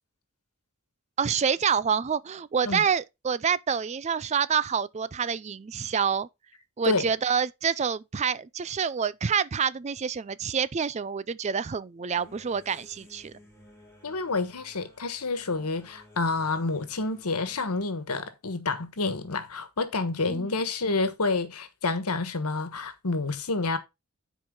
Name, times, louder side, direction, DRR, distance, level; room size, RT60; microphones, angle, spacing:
voice 1, 1.2-6.3 6.8-13.3 20.3-20.5, right 7 dB, 30° right, 0.4 m, -27 dB
sound 1, 12.1-17.9, left 1 dB, 15° left, 3.3 m, -55 dB
voice 2, 14.0-23.8, left 3 dB, 90° left, 1.3 m, -29 dB
10.5 x 4.8 x 3.8 m
head